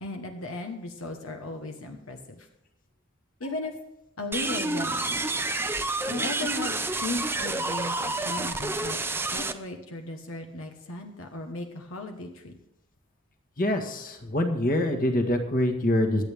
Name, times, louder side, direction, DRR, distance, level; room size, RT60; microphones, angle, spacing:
voice 1, 0.0-2.5 3.4-3.7 4.2-5.3 6.1-9.0 9.3-12.5, left 2 dB, 75° left, 4 dB, 1.4 m, -36 dB
sound 1, 4.3-9.5, right 2 dB, 10° right, 0.6 m, -29 dB
voice 2, 13.6-16.2, left 1 dB, 45° left, 3 dB, 1.7 m, -25 dB
23.0 x 8.6 x 3.6 m, 0.84 s
head